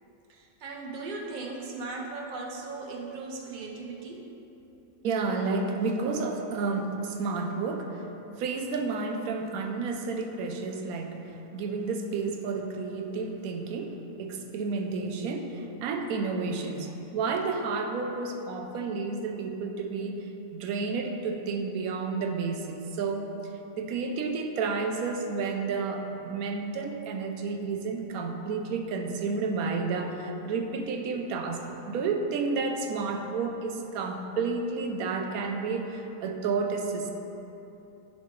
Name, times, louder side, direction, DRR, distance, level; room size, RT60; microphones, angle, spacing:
voice 1, 0.3-4.3, right 3 dB, 45° right, 0 dB, 0.7 m, -38 dB
voice 2, 5.0-37.1, right 4 dB, 80° right, 4 dB, 1.1 m, -31 dB
9.9 x 4.2 x 3.2 m, 3.0 s
omnidirectional pair, 1.5 m